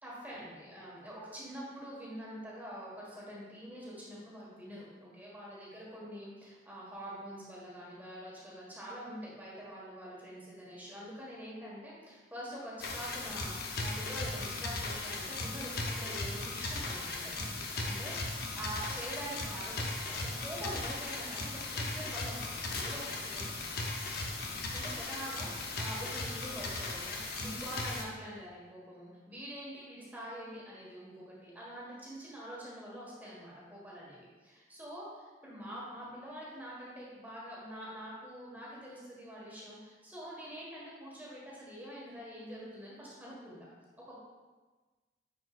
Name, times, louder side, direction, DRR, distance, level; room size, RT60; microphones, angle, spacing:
voice 1, 0.0-23.5 24.7-35.1 35.4-43.7 44.1-44.2, equal, 10° right, -6 dB, 1.7 m, -45 dB
sound 1, 12.8-28.0, left 2 dB, 60° left, 0.8 m, -37 dB
9.9 x 4.7 x 2.5 m, 1.3 s
head